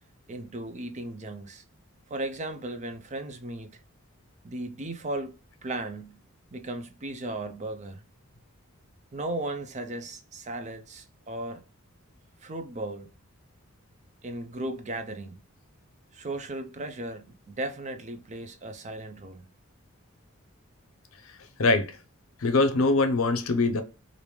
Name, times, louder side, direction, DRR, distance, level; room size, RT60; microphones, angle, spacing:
voice 1, 0.3-1.6 2.1-3.8 4.4-5.3 5.6-6.2 6.5-8.0 9.1-11.6 12.4-13.1 14.2-15.4 16.1-19.4, right 2 dB, 35° right, 0.5 m, -36 dB
voice 2, 21.6-22.0 22.4-23.8, left 3 dB, 70° left, 0.6 m, -23 dB
3.3 x 2.6 x 3.0 m
head